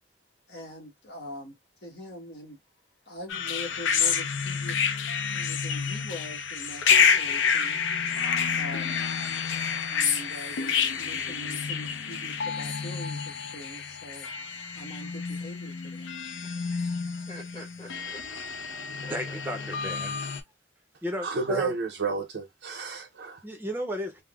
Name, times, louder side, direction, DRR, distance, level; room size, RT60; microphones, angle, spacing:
voice 1, 0.5-1.5 1.8-2.6 3.1-4.8 5.3-7.8 8.6-9.0 9.8-13.2 13.5-14.3 14.7-16.1, equal, 60° left, 1.1 m, -43 dB
sound 1, 3.3-20.4, left 6 dB, 80° left, 0.5 m, -28 dB
voice 2, 16.4-18.2 19.0-19.4, left 1 dB, 30° left, 1.2 m, -47 dB
voice 3, 19.1-20.2 21.0-21.7 23.4-24.2, equal, 10° right, 0.6 m, -34 dB
voice 4, 21.2-23.4, right 4 dB, 65° right, 0.5 m, -31 dB
3.5 x 2.0 x 2.3 m
head